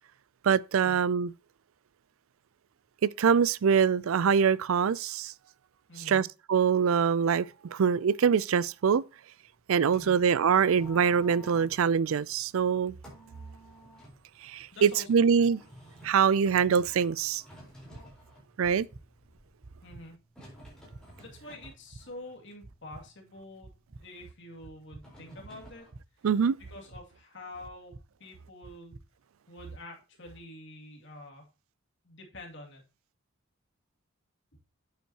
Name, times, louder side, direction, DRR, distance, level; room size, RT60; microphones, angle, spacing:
voice 1, 0.4-1.3 3.2-5.3 6.1-9.0 9.7-12.9 14.4-15.6 16.0-17.4 18.6-18.9 26.2-26.5, right 6 dB, 70° right, 0.4 m, -24 dB
voice 2, 5.9-6.2 9.9-10.2 14.7-15.5 19.8-20.2 21.2-23.7 24.0-25.9 26.7-28.9 29.5-31.5 32.0-32.8, left 1 dB, 55° left, 2.5 m, -47 dB
sound 1, 9.4-25.9, left 1 dB, 5° left, 4.1 m, -54 dB
sound 2, 17.9-18.0 18.6-19.0 19.6-20.0 20.6-21.0 21.6-22.0 22.6-23.0 23.6-24.0 24.6-25.0 25.6-26.0 26.6-27.0 27.6-28.0 28.6-29.0, right 2 dB, 50° right, 0.7 m, -48 dB
9.1 x 8.2 x 2.9 m
head